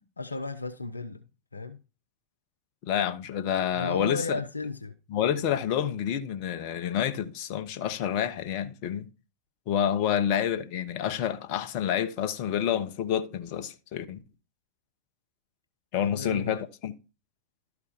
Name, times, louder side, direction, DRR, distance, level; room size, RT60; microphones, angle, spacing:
voice 1, 0.2-1.3 1.5-1.8 3.7-4.9 10.0-10.1 16.0-16.6, left 3 dB, 80° left, 0.7 m, -34 dB
voice 2, 2.8-4.4 5.1-9.1 9.7-14.2 15.9-16.9, left 9 dB, 45° left, 1.1 m, -28 dB
12.5 x 4.8 x 5.2 m
figure-of-eight pair, 90°, 0 cm